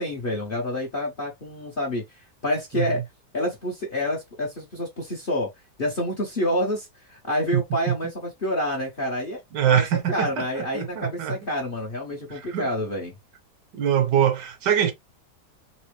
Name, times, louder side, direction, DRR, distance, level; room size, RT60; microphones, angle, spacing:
voice 1, 0.0-3.0 3.3-5.5 5.8-9.4 9.6-13.1, left 1 dB, 40° left, 0.9 m, -28 dB
voice 2, 7.5-8.0 9.5-11.4 12.3-12.7 13.7-14.9, right 9 dB, 70° right, 1.3 m, -24 dB
4.2 x 2.1 x 3.1 m
omnidirectional pair, 2.0 m